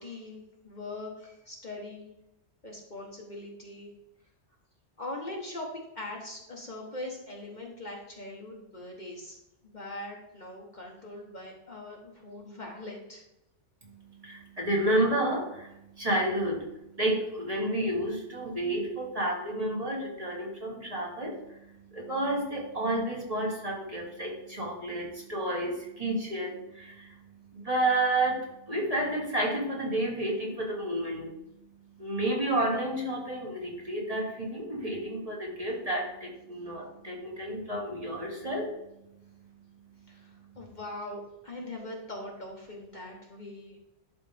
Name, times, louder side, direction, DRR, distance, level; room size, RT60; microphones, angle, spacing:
voice 1, 0.0-2.0 2.6-3.9 5.0-5.7 5.9-9.4 9.6-13.2 40.1-43.8, left 2 dB, 40° left, -1 dB, 1.3 m, -41 dB
voice 2, 13.8-16.7 17.0-27.2 27.5-31.3 32.0-38.7, right 1 dB, 30° right, -3 dB, 1.8 m, -31 dB
11.5 x 4.1 x 3.4 m, 0.87 s
omnidirectional pair, 1.2 m